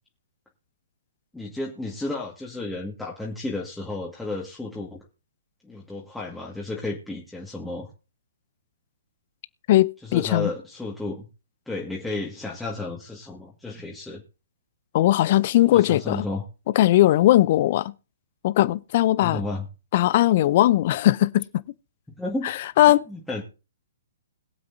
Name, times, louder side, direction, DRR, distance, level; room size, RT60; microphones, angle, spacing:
voice 1, 1.3-5.0 5.6-7.9 10.0-11.3 11.7-14.2 15.7-16.4 19.2-19.6 22.1-22.6 23.1-23.4, left 2 dB, 5° left, 1.9 m, -32 dB
voice 2, 9.7-10.5 14.9-16.3 16.7-17.9 18.4-19.4 19.9-21.6 22.4-23.0, left 14 dB, 50° left, 0.6 m, -19 dB
21.5 x 7.7 x 2.7 m
hypercardioid pair, 125°, 0 cm